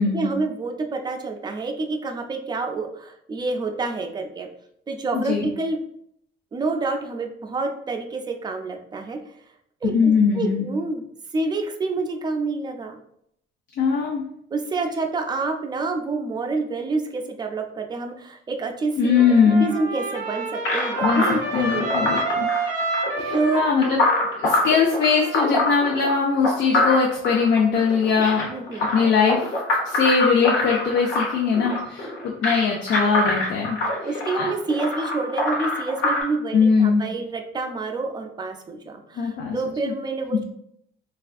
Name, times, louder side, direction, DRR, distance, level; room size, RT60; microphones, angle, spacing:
voice 1, 0.1-4.5 4.9-5.8 6.5-9.2 9.8-11.0 11.3-13.0 14.5-22.1 23.3-23.6 28.5-28.9 33.2-33.4 34.0-40.4, right 3 dB, 20° right, 4 dB, 0.3 m, -28 dB
voice 2, 5.1-5.5 9.8-10.7 13.8-14.2 19.0-19.7 21.0-22.2 23.2-24.0 24.4-28.5 28.9-29.5 29.8-33.8 34.3-34.5 36.5-37.0 39.2-39.6 39.8-39.9, left 5 dB, 60° left, 0 dB, 0.5 m, -21 dB
Trumpet, 19.2-25.8, right 3 dB, 40° right, 0.8 m, -29 dB
sound 1, 20.6-36.2, left 2 dB, 85° left, 0.9 m, -25 dB
3.3 x 2.3 x 2.4 m, 0.72 s
cardioid pair, 130°, 20 cm